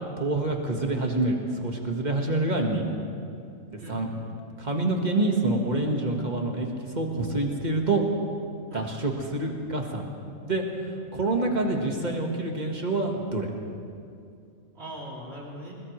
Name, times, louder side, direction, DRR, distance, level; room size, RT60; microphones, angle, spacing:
voice 1, 0.0-2.9 3.7-4.1 4.6-6.7 6.9-8.0 8.7-10.1 10.4-10.6 11.1-13.5, right 2 dB, 35° right, 2 dB, 1.6 m, -27 dB
voice 2, 3.8-4.2 8.7-8.8 11.5-12.0 14.7-15.7, equal, 50° right, -4 dB, 3.2 m, -40 dB
20.5 x 20.5 x 3.2 m, 2.4 s
omnidirectional pair, 1.4 m